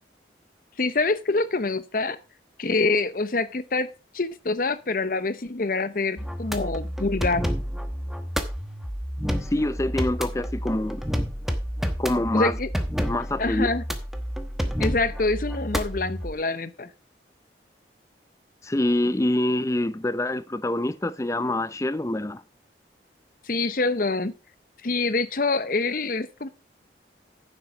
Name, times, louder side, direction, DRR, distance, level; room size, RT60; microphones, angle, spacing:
voice 1, 0.8-2.2 2.6-3.9 4.1-7.4 12.3-12.7 13.4-13.8 14.8-16.9 23.5-24.3 24.8-26.5, left 3 dB, 50° left, 0.8 m, -25 dB
sound 1, 6.2-16.3, equal, ahead, 1.0 m, -30 dB
voice 2, 9.4-11.0 12.0-12.5 13.1-13.7 18.6-22.4, left 1 dB, 15° left, 0.5 m, -25 dB
9.8 x 7.5 x 5.0 m
head